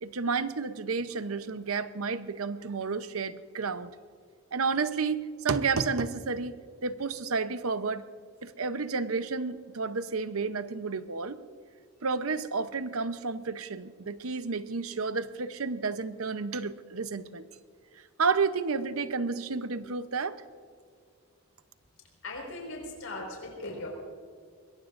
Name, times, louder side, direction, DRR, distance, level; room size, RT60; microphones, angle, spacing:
voice 1, 0.0-3.9 4.5-6.6 6.8-8.1 8.4-11.4 12.0-17.5 18.2-20.4, right 4 dB, 85° right, 12 dB, 0.8 m, -31 dB
voice 2, 22.2-23.9, left 2 dB, 75° left, 0 dB, 5.0 m, -39 dB
22.0 x 21.5 x 2.6 m, 2.1 s
head